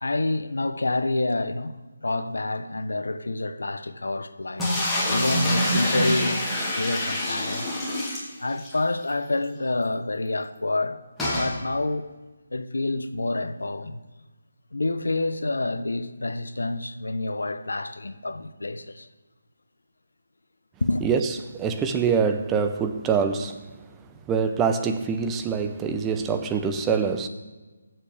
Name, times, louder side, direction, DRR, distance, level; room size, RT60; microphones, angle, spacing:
voice 1, 0.0-1.8 2.0-7.7 8.4-12.1 12.5-14.0 14.7-19.1 20.8-21.1, left 2 dB, 90° left, 0.9 m, -28 dB
sound 1, 4.6-8.8 9.1-9.2 9.4-9.5 11.2-11.5, equal, 5° left, 2.1 m, -26 dB
voice 2, 21.0-23.6 24.3-27.3, right 6 dB, 10° right, 0.6 m, -25 dB
19.5 x 7.7 x 3.4 m
figure-of-eight pair, 165°, 0 cm